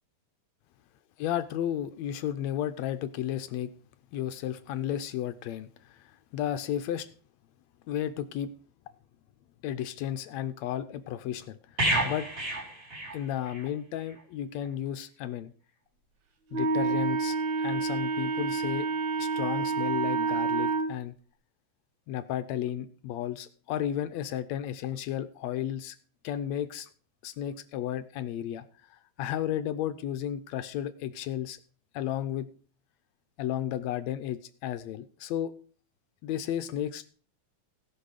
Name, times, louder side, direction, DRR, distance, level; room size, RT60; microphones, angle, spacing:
voice 1, 1.2-3.7 4.1-7.1 7.9-8.5 9.6-12.3 13.1-15.5 16.5-18.9 19.2-21.2 22.1-26.0 26.2-26.9 27.2-28.6 28.9-31.6 31.9-32.5 33.4-35.5 36.2-37.1, left 11 dB, 75° left, 11 dB, 1.7 m, -33 dB
sound 1, 11.8-13.7 14.0-14.2, right 1 dB, 20° right, 3.8 m, -30 dB
Wind instrument woodwind instrument, 16.5-20.9, right 4 dB, 70° right, 2.7 m, -28 dB
18.0 x 6.0 x 4.9 m, 0.42 s
omnidirectional pair, 3.5 m